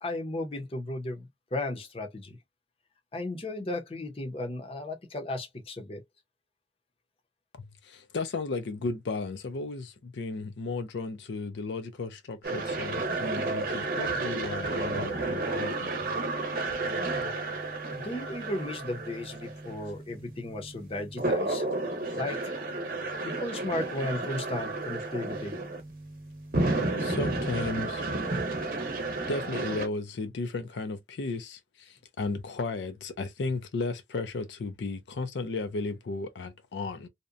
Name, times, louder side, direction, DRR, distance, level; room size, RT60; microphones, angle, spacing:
voice 1, 0.0-2.4 3.1-6.0 17.9-21.7 22.1-22.6 23.2-25.6, left 2 dB, 30° left, 0.6 m, -35 dB
voice 2, 7.5-16.0 27.0-28.0 29.3-37.1, left 3 dB, 80° left, 0.4 m, -34 dB
sound 1, 12.4-29.9, right 2 dB, 50° right, 0.7 m, -32 dB
2.7 x 2.1 x 2.4 m
head